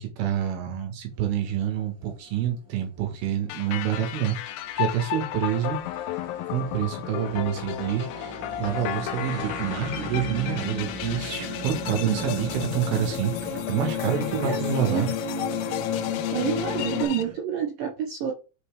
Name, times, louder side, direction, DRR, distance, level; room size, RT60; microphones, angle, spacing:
voice 1, 0.0-5.8 6.5-13.3 13.7-15.1, right 9 dB, 65° right, 2.9 m, -27 dB
sound 1, 1.2-17.3, right 4 dB, 40° right, 2.0 m, -40 dB
sound 2, 3.5-17.2, left 13 dB, 90° left, 2.3 m, -35 dB
sound 3, 6.7-17.1, left 8 dB, 75° left, 2.8 m, -33 dB
voice 2, 12.1-12.5 14.3-15.1 16.3-18.3, right 8 dB, 85° right, 1.9 m, -29 dB
6.4 x 5.4 x 3.4 m
omnidirectional pair, 5.4 m